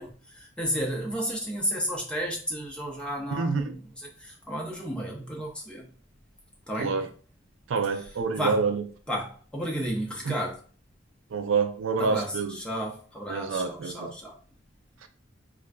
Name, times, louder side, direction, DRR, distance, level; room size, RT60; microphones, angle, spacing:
voice 1, 0.0-5.9 6.7-7.0 8.4-8.6 9.1-10.6 12.0-14.4, equal, 5° left, 0.7 m, -32 dB
voice 2, 3.3-3.7 6.8-7.1 7.7-8.8 10.2-10.4 11.3-12.6 13.3-14.1 15.0-15.1, right 4 dB, 85° right, 0.4 m, -27 dB
3.7 x 2.4 x 2.2 m
head